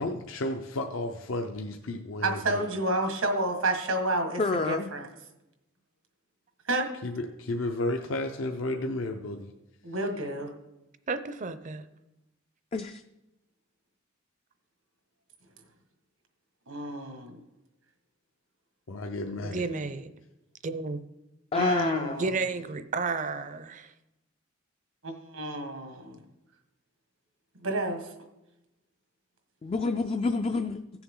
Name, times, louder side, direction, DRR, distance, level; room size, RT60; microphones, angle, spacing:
voice 1, 0.0-2.6 7.0-9.5 18.9-19.7, left 2 dB, 70° left, 4 dB, 0.6 m, -32 dB
voice 2, 2.2-4.4 4.6-5.1 6.7-6.9 9.8-10.5 16.7-17.4 21.5-22.3 25.0-26.2 27.6-28.0, right 1 dB, 85° right, 4 dB, 1.7 m, -29 dB
voice 3, 4.4-4.9 12.7-13.0 21.5-22.2 29.6-30.8, left 3 dB, 30° left, 7 dB, 0.3 m, -28 dB
voice 4, 11.1-11.8 19.4-20.1 20.6-21.0 22.2-23.9, right 4 dB, 40° right, 12 dB, 0.5 m, -32 dB
15.5 x 7.0 x 3.8 m, 0.96 s
head